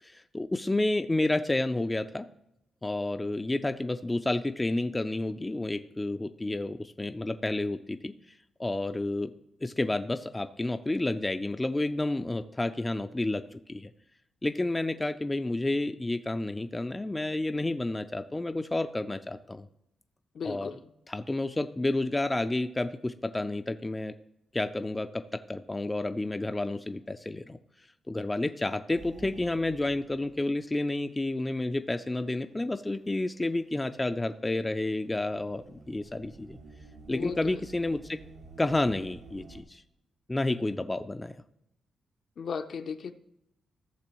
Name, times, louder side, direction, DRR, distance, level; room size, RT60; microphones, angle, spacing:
voice 1, 0.0-2.3 2.8-8.1 8.6-9.3 9.6-13.9 14.4-19.7 20.4-20.7 21.1-24.1 24.5-27.6 28.1-36.6 37.1-38.2 38.6-39.8 40.3-41.4, left 2 dB, 15° left, 8 dB, 0.4 m, -30 dB
voice 2, 20.3-20.8 37.1-37.4 42.4-43.1, left 6 dB, 60° left, 8 dB, 0.6 m, -35 dB
sound 1, 28.9-30.9 31.2-31.3 32.2-32.4 34.6-39.6, right 2 dB, 85° right, 1.5 m, -50 dB
15.5 x 6.7 x 3.0 m, 0.81 s
cardioid pair, 115°, 0 cm